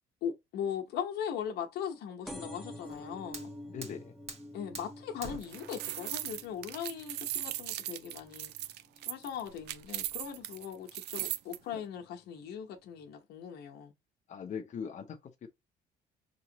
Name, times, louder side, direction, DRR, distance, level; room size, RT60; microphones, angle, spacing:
voice 1, 0.2-3.5 4.5-8.5 9.1-13.9, left 8 dB, 75° left, 1.0 m, -39 dB
sound 1, 2.3-9.5 10.0-10.4 11.3-11.4 11.6-11.7 11.9-12.0, equal, ahead, 0.7 m, -49 dB
Fire, 2.7-8.7, right 3 dB, 40° right, 1.4 m, -49 dB
voice 2, 3.7-4.1 11.7-11.8 14.3-15.5, left 7 dB, 45° left, 0.8 m, -41 dB
sound 2, 5.2-11.6, right 14 dB, 80° right, 0.4 m, -38 dB
4.9 x 3.1 x 2.8 m
cardioid pair, 110°, 17 cm